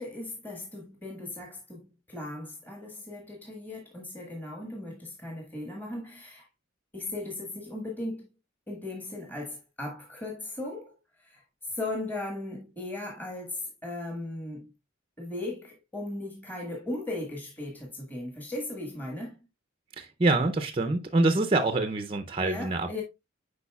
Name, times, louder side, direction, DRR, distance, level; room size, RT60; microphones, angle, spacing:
voice 1, 0.0-6.5 6.9-8.3 8.7-14.7 15.2-19.4 22.4-23.0, left 2 dB, 10° left, 1.4 m, -37 dB
voice 2, 20.0-23.0, right 2 dB, 25° right, 0.5 m, -26 dB
8.2 x 5.1 x 2.3 m
head